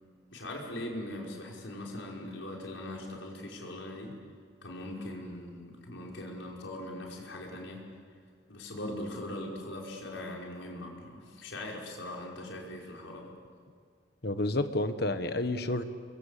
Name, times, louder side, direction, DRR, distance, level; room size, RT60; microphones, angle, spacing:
voice 1, 0.3-4.1 4.6-7.8 8.5-13.3, left 1 dB, 75° left, -2 dB, 5.5 m, -40 dB
voice 2, 14.2-15.8, left 2 dB, 55° left, 9 dB, 1.4 m, -30 dB
28.5 x 22.5 x 8.5 m, 2.1 s
head